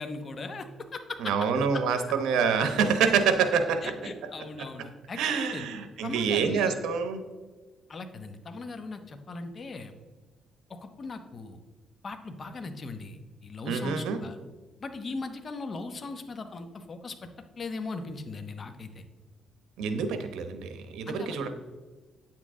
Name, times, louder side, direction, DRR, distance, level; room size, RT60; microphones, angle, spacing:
voice 1, 0.0-1.3 1.7-1.8 2.1-2.2 3.8-5.6 6.0-6.8 7.9-9.9 10.7-11.6 12.0-14.4 14.8-17.1 17.6-19.0 21.1-21.5, left 3 dB, 40° left, 7 dB, 1.1 m, -39 dB
voice 2, 1.2-3.8 5.2-7.2 13.7-14.2 19.8-21.5, right 6 dB, 85° right, 8 dB, 1.0 m, -26 dB
9.3 x 7.5 x 3.7 m, 1.3 s
cardioid pair, 90°, 0 cm